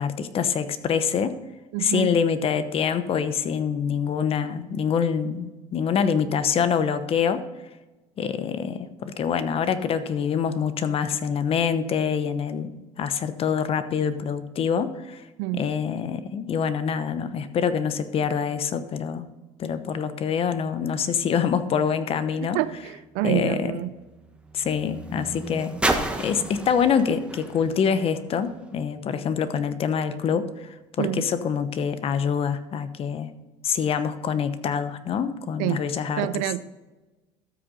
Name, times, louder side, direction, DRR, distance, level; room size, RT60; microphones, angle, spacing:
voice 1, 0.0-1.3 1.8-7.4 8.2-15.2 15.5-19.3 19.6-22.6 23.2-23.7 24.5-25.8 26.2-33.3 33.6-36.3, left 7 dB, 45° left, 11 dB, 1.0 m, -25 dB
voice 2, 1.7-2.1 15.4-15.7 22.4-23.9 31.0-31.3 35.6-35.9 36.2-36.6, right 15 dB, 75° right, 16 dB, 0.5 m, -27 dB
sound 1, 22.3-28.8 29.6-29.7, right 2 dB, 10° right, 1.2 m, -33 dB
13.0 x 6.3 x 4.0 m, 1.1 s
supercardioid pair, 100°, 14 cm